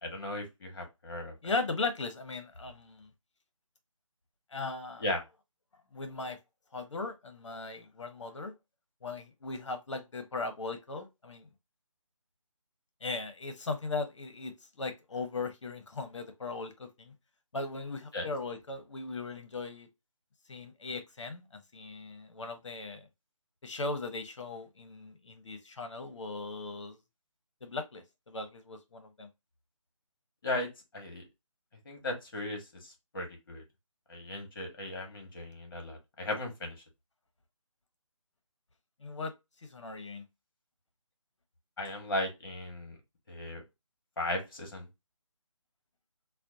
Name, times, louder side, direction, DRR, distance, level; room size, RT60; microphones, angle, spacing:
voice 1, 0.0-1.3 5.0-5.2 18.1-18.3 30.4-30.7 30.9-31.2 31.8-33.6 34.1-36.7 41.8-42.9 43.3-43.6 44.2-44.9, left 1 dB, 40° left, 1.5 m, -36 dB
voice 2, 1.4-3.1 4.5-5.0 5.9-6.4 6.7-8.5 9.0-11.5 13.0-17.1 17.5-19.9 20.5-23.0 23.6-27.0 27.6-29.3 39.0-39.3 39.6-40.2, left 3 dB, 60° left, 1.0 m, -38 dB
4.3 x 2.2 x 2.6 m
figure-of-eight pair, 165°, 17 cm